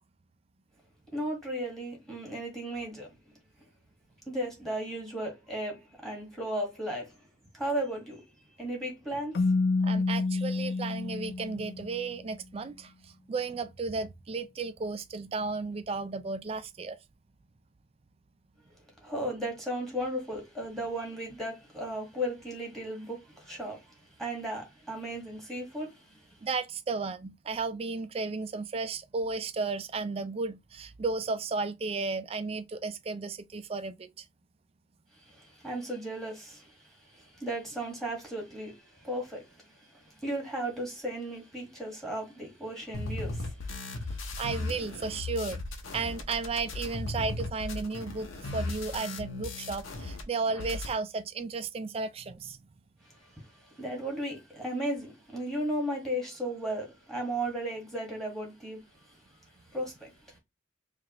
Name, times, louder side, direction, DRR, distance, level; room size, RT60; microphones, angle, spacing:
voice 1, 1.1-3.1 4.3-7.2 7.5-8.2 8.6-9.6 19.0-26.4 35.1-44.4 53.0-60.4, right 1 dB, ahead, 1.4 m, -36 dB
Keyboard (musical), 9.3-12.1, left 3 dB, 55° left, 0.3 m, -28 dB
voice 2, 9.8-17.0 26.4-34.2 44.4-45.6 45.9-52.6, right 4 dB, 30° right, 0.3 m, -34 dB
sound 1, 42.9-50.2 50.5-50.9, left 2 dB, 90° left, 0.9 m, -37 dB
4.8 x 2.4 x 2.9 m
head